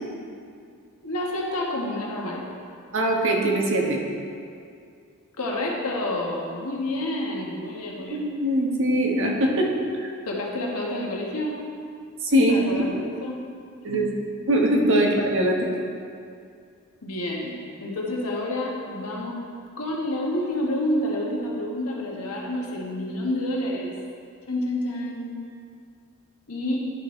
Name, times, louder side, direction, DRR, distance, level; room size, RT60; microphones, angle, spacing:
voice 1, 1.0-2.4 5.4-8.2 10.3-11.6 12.5-13.4 13.9-14.0 14.9-15.1 17.0-19.4 19.8-23.9 24.5-25.4 26.5-26.9, left 1 dB, 80° left, -2 dB, 1.2 m, -29 dB
voice 2, 2.9-4.0 8.1-9.7 10.0-10.1 12.2-12.9 13.8-14.1 14.5-15.7, right 1 dB, 60° right, -1 dB, 1.0 m, -22 dB
11.0 x 4.7 x 3.1 m, 2.4 s
head